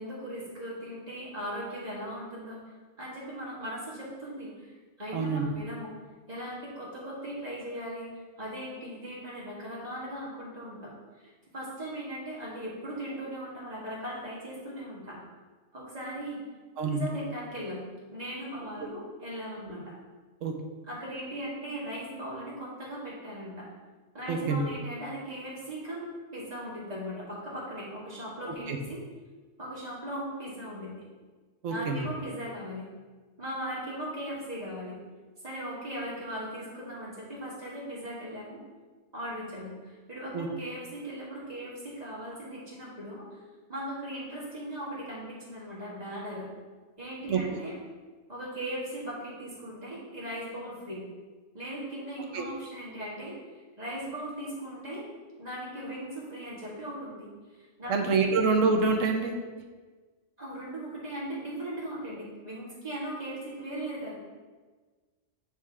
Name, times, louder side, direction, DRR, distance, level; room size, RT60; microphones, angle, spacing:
voice 1, 0.0-2.6 3.0-5.9 6.3-8.1 8.4-15.2 15.7-16.4 16.8-17.8 18.1-19.9 20.9-23.7 24.1-29.0 29.6-30.9 31.7-32.8 33.4-35.0 35.4-38.6 39.1-43.4 43.7-46.5 47.0-47.8 48.3-51.0 51.5-55.0 55.4-57.3 57.8-57.9 58.2-58.4 60.4-64.1, equal, 35° right, -7 dB, 1.9 m, -38 dB
voice 2, 5.1-5.4 16.8-17.1 20.4-20.5 24.3-24.7 28.7-28.8 31.6-32.1 40.3-40.5 47.3-47.6 52.3-52.4 57.9-59.3, right 4 dB, 85° right, 4 dB, 1.1 m, -26 dB
9.3 x 3.2 x 3.5 m, 1.4 s
omnidirectional pair, 1.3 m